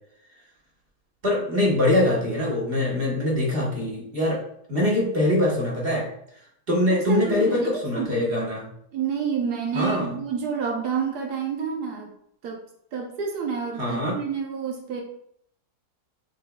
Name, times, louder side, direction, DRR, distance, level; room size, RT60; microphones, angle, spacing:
voice 1, 1.2-4.4 4.7-6.1 6.7-8.7 9.7-10.2 13.8-14.2, left 1 dB, 40° right, -4 dB, 1.3 m, -23 dB
voice 2, 6.9-8.2 8.9-12.1 12.4-12.6 12.9-15.0, right 6 dB, 75° right, 1 dB, 1.3 m, -29 dB
6.7 x 3.3 x 2.3 m, 0.70 s
omnidirectional pair, 1.7 m